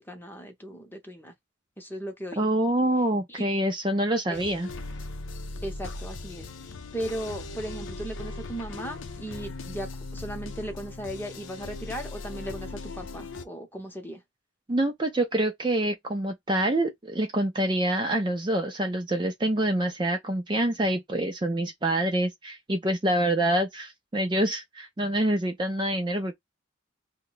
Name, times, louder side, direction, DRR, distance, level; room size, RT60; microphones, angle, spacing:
voice 1, 0.0-1.3 1.8-2.5 3.3-3.4 4.3-4.4 5.6-14.2, right 1 dB, 10° left, 0.8 m, -37 dB
voice 2, 2.4-4.7 14.7-26.3, right 1 dB, 20° right, 0.4 m, -26 dB
sound 1, 4.3-13.5, left 3 dB, 70° left, 0.6 m, -39 dB
2.7 x 2.2 x 3.8 m
head